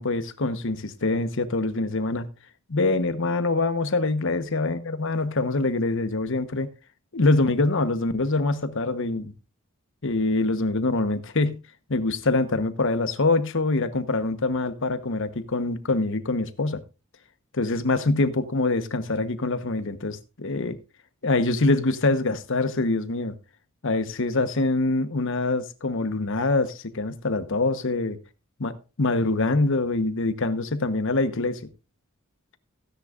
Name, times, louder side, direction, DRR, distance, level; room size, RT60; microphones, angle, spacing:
voice 1, 0.0-2.3 2.7-6.7 7.1-9.3 10.0-11.6 11.9-16.8 17.5-20.8 21.2-23.3 23.8-28.2 28.6-31.6, left 2 dB, 65° left, 1.1 m, -24 dB
16.0 x 10.0 x 2.5 m
head